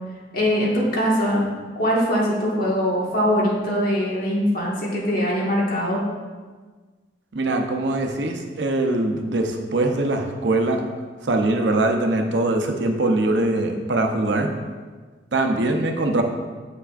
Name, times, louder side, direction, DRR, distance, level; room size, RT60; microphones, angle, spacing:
voice 1, 0.3-1.4 1.7-6.0, equal, 55° left, -4 dB, 1.6 m, -22 dB
voice 2, 7.3-10.9 11.2-14.5 15.3-16.2, right 2 dB, 80° right, 3 dB, 0.7 m, -22 dB
7.7 x 5.7 x 2.5 m, 1.4 s
head